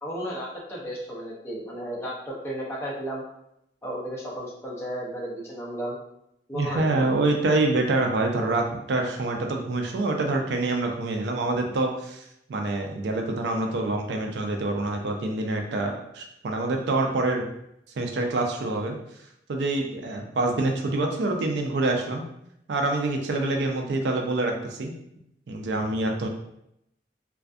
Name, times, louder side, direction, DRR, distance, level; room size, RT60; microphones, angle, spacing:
voice 1, 0.0-3.2 3.8-6.0 6.5-7.1, equal, 15° left, -5 dB, 0.5 m, -33 dB
voice 2, 6.5-12.2 12.5-17.5 18.0-19.0 19.5-22.2 22.7-24.5 24.8-24.9 25.5-26.3, right 2 dB, 80° right, 3 dB, 0.4 m, -26 dB
2.5 x 2.3 x 2.3 m, 0.78 s
head